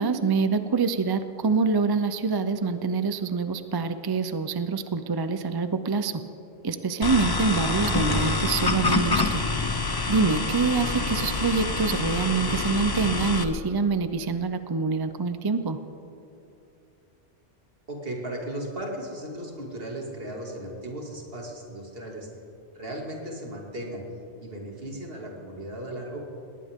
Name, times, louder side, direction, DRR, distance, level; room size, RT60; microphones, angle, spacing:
voice 1, 0.0-6.2 6.6-9.4 10.1-15.8, right 4 dB, 30° right, 10 dB, 0.4 m, -25 dB
sound 1, 7.0-13.4, left 3 dB, 25° left, 0.6 m, -26 dB
voice 2, 17.9-22.3 22.7-24.0 24.4-26.2, right 1 dB, 55° right, -1 dB, 2.7 m, -36 dB
20.5 x 18.5 x 3.7 m, 2.8 s
omnidirectional pair, 1.1 m